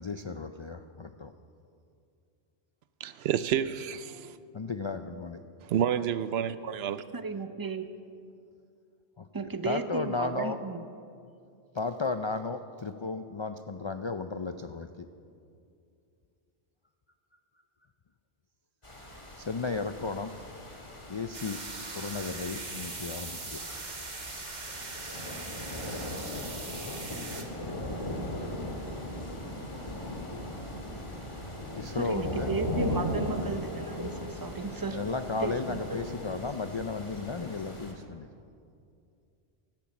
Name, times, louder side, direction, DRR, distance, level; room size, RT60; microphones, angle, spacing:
voice 1, 0.0-1.3 4.5-5.4 9.2-9.3 9.6-10.6 11.7-15.1 19.4-20.3 21.1-21.6 21.9-23.6 31.7-32.5 34.9-38.3, left 4 dB, 50° left, 0.3 m, -34 dB
voice 2, 3.0-4.4 5.6-7.0, right 9 dB, 70° right, 0.8 m, -29 dB
voice 3, 7.1-7.8 9.3-10.8 32.0-35.0 35.4-36.0, right 4 dB, 25° right, 0.6 m, -34 dB
sound 1, 18.8-37.9, left 1 dB, 30° left, 2.0 m, -38 dB
sound 2, 21.3-27.4, right 3 dB, 40° right, 1.5 m, -40 dB
17.5 x 12.0 x 6.1 m
omnidirectional pair, 1.1 m